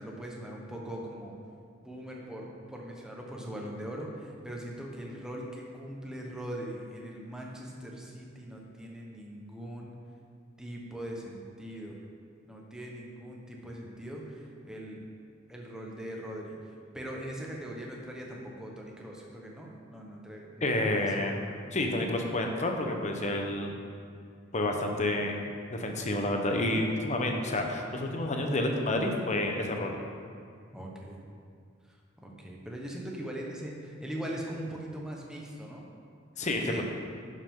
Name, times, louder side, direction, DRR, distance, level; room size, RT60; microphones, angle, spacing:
voice 1, 0.0-1.4 1.8-9.9 10.6-12.0 12.4-15.0 15.5-16.6 16.9-21.1 30.7-31.2 32.2-35.9 36.6-36.8, right 1 dB, 5° right, -2 dB, 1.2 m, -41 dB
voice 2, 20.6-21.3 21.7-23.7 24.5-25.3 25.7-29.9 36.4-36.8, left 1 dB, 35° left, 3 dB, 1.0 m, -29 dB
11.0 x 7.6 x 3.8 m, 2.3 s
head